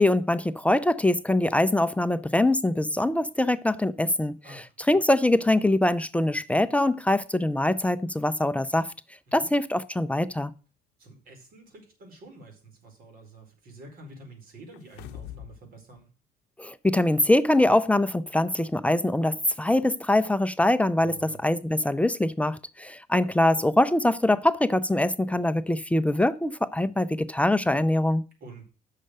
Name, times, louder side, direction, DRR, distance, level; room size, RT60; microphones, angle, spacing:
voice 1, 0.0-4.6 4.9-8.9 9.3-10.5 16.6-28.2, left 1 dB, 10° left, 0.5 m, -23 dB
voice 2, 11.0-16.1 21.0-21.4 28.4-28.6, right 2 dB, 60° right, 4.5 m, -48 dB
sound 1, 14.7-15.6 16.0-16.1, left 12 dB, 90° left, 0.7 m, -42 dB
8.9 x 6.6 x 6.5 m
cardioid pair, 110°, 17 cm